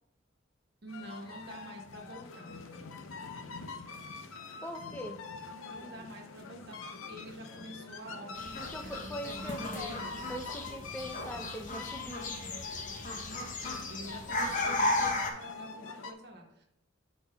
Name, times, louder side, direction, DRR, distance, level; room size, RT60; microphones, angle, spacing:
voice 1, 0.8-2.6 5.7-10.2 13.6-16.6, right 1 dB, 55° right, 1 dB, 1.2 m, -47 dB
sound 1, 0.9-16.1, left 4 dB, 80° left, 0.6 m, -45 dB
voice 2, 4.6-5.2 8.6-12.3, equal, 10° left, 3 dB, 0.5 m, -42 dB
sound 2, 8.3-15.3, left 2 dB, 40° left, 0.8 m, -35 dB
10.0 x 4.3 x 2.3 m, 0.79 s
head